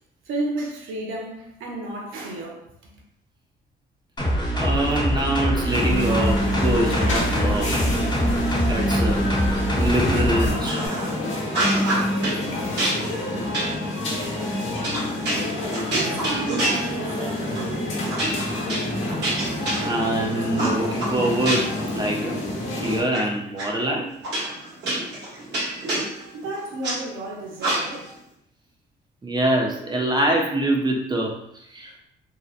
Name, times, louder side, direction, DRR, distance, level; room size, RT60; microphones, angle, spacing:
voice 1, 0.3-2.9 15.2-18.2 26.3-28.0, right 2 dB, 90° right, 0.6 m, -33 dB
sound 1, 4.2-10.5 10.9-11.0, equal, 20° left, 0.9 m, -24 dB
voice 2, 4.3-7.8 8.7-9.2 9.8-10.9 19.8-22.4 22.8-24.1 29.2-31.9, right 1 dB, 20° right, 0.5 m, -24 dB
sound 2, 5.7-23.0, left 1 dB, 75° left, 1.0 m, -27 dB
sound 3, 10.6-11.2 11.5-12.4 12.8-17.2 17.5-17.7 18.1-20.2 20.6-21.9 22.2-23.2 23.6-23.7 24.2-27.0 27.6-28.1, right 1 dB, 60° right, 1.1 m, -27 dB
2.8 x 2.0 x 2.4 m
cardioid pair, 90°, 20 cm